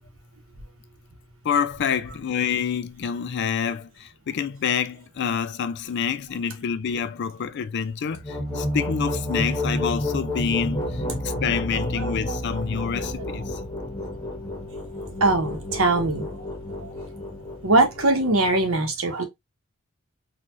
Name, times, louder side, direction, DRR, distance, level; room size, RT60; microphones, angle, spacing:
voice 1, 1.4-13.6, left 7 dB, 55° left, 0.4 m, -27 dB
sound 1, 8.1-18.7, left 1 dB, 15° left, 0.9 m, -30 dB
voice 2, 11.7-12.4 13.3-13.4 15.2-16.5 16.7-16.9 17.6-19.2, right 2 dB, 75° right, 1.1 m, -22 dB
4.0 x 2.4 x 3.0 m
head